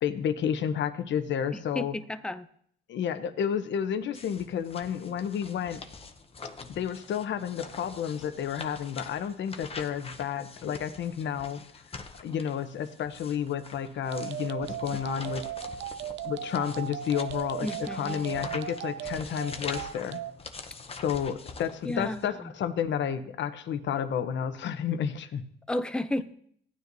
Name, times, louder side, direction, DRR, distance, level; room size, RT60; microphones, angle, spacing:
voice 1, 0.0-2.0 2.9-5.8 6.7-11.6 12.2-15.4 16.2-20.2 21.0-25.4, left 8 dB, 70° left, 11 dB, 0.8 m, -31 dB
voice 2, 1.5-2.5 17.6-18.7 21.8-22.2 25.7-26.2, left 1 dB, 5° left, 10 dB, 0.5 m, -33 dB
sound 1, 4.1-22.3, left 4 dB, 30° left, 0.8 m, -44 dB
sound 2, 14.0-20.3, right 11 dB, 65° right, 0.5 m, -37 dB
16.0 x 9.4 x 2.7 m, 0.65 s
cardioid pair, 90°, 20 cm